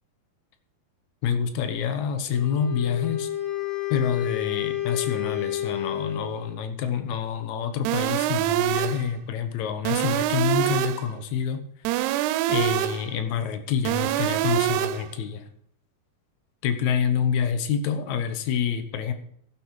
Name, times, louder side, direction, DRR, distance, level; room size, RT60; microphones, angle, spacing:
voice 1, 1.2-3.3 3.9-11.6 12.5-15.5 16.6-19.1, left 7 dB, 75° left, 8 dB, 1.7 m, -27 dB
Wind instrument woodwind instrument, 2.3-6.6, left 12 dB, 45° left, 2.4 m, -30 dB
sound 1, 7.9-9.1 9.9-11.1 11.9-13.1 13.9-15.1, right 14 dB, 80° right, 2.5 m, -25 dB
15.0 x 7.0 x 4.8 m, 0.65 s
omnidirectional pair, 5.0 m